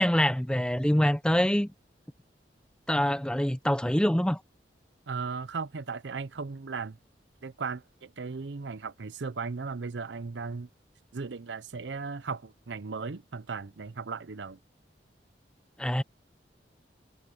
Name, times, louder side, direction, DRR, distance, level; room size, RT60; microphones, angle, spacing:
voice 1, 0.0-1.7 2.9-4.4 15.8-16.0, equal, 5° left, 0.6 m, -25 dB
voice 2, 5.1-7.0 7.4-10.7 11.1-14.6, right 4 dB, 90° right, 0.7 m, -36 dB
head